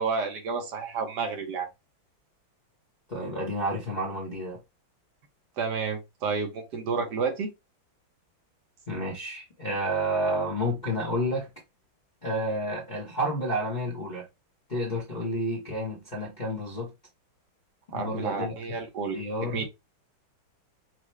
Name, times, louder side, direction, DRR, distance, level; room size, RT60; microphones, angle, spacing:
voice 1, 0.0-1.7 5.6-7.5 17.9-19.2 19.5-19.6, right 5 dB, 65° right, 1.3 m, -30 dB
voice 2, 3.1-4.6 8.9-11.5 12.2-14.3 14.7-16.9 17.9-18.8 19.1-19.6, equal, 35° left, 0.7 m, -30 dB
6.0 x 2.1 x 3.2 m
omnidirectional pair, 2.2 m